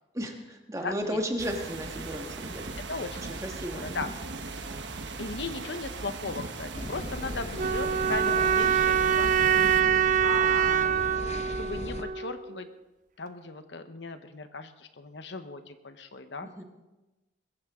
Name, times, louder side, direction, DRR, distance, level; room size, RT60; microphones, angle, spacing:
voice 1, 0.1-2.7 3.4-4.1 9.5-10.0 16.4-16.6, equal, 15° right, 3 dB, 1.7 m, -35 dB
voice 2, 0.8-1.2 2.9-3.4 3.7-4.1 5.2-9.3 10.2-12.7 13.2-16.6, left 3 dB, 70° left, 9 dB, 1.1 m, -37 dB
sound 1, 1.4-9.8, right 3 dB, 70° right, 1.2 m, -39 dB
sound 2, 6.7-12.0, left 1 dB, 35° left, 0.8 m, -38 dB
sound 3, 7.6-12.6, right 8 dB, 40° right, 0.5 m, -25 dB
21.5 x 14.5 x 3.8 m, 1.0 s
head